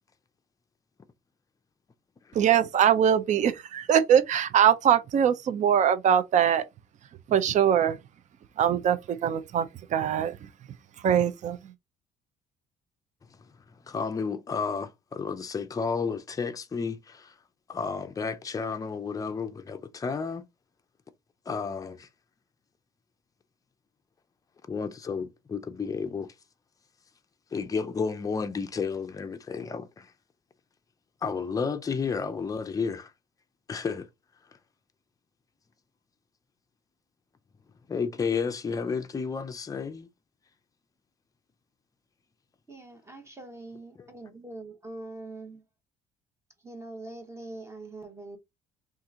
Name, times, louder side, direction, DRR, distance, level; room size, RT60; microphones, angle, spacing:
voice 1, 2.3-6.6 7.3-8.0 8.6-10.3 11.0-11.6, right 9 dB, 45° right, 0.5 m, -22 dB
voice 2, 13.9-17.3 17.7-20.4 21.5-22.1 24.7-26.3 27.5-30.1 31.2-33.1 33.7-34.1 37.9-40.1 44.0-44.1, left 5 dB, 20° left, 0.5 m, -32 dB
voice 3, 42.7-45.6 46.6-48.4, right 2 dB, 15° right, 0.9 m, -43 dB
2.8 x 2.5 x 3.6 m
cardioid pair, 110°, 17 cm